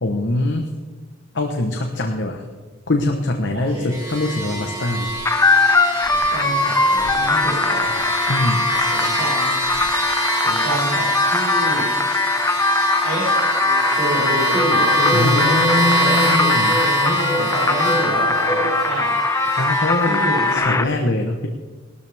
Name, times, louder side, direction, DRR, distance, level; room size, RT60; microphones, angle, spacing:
voice 1, 0.0-0.7 1.3-2.4 2.9-5.1 8.3-8.7 15.1-16.8 19.5-20.2 20.5-21.5, left 2 dB, 65° left, 3 dB, 1.1 m, -23 dB
sound 1, 3.5-3.7 5.0-5.1 6.0-6.5 7.0-7.4 7.8-8.0 8.7-8.9 9.6-9.9 13.6-18.8, equal, 80° left, 3.0 m, -28 dB
voice 2, 3.5-3.9 6.3-8.0 8.9-9.5 10.4-11.9 13.0-13.3 13.9-19.2 20.0-21.0, right 1 dB, 50° right, -10 dB, 5.7 m, -28 dB
sound 2, 3.9-20.6, right 1 dB, 20° right, 3.7 m, -25 dB
sound 3, 5.3-20.8, left 3 dB, 15° left, 0.5 m, -20 dB
18.5 x 13.0 x 3.5 m, 1.3 s
head